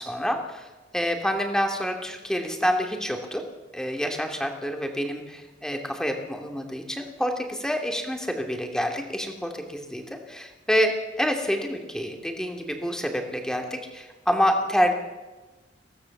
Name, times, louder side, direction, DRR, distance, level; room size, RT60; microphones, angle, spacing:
voice 1, 0.0-3.5 3.7-14.9, equal, 5° left, 4 dB, 2.6 m, -27 dB
23.5 x 17.0 x 7.3 m, 1.2 s
head